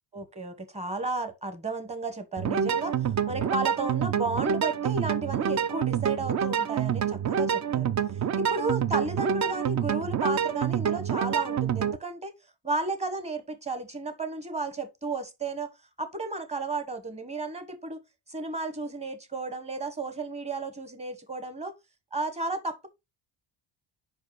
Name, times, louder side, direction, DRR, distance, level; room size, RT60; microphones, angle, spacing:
voice 1, 0.1-12.3 12.6-15.7 16.0-18.0 18.3-21.7 22.1-22.9, right 3 dB, 15° right, 1.1 m, -33 dB
sound 1, 2.4-12.0, right 8 dB, 35° right, 0.5 m, -27 dB
5.3 x 4.7 x 4.5 m
cardioid pair, 150°, 49 cm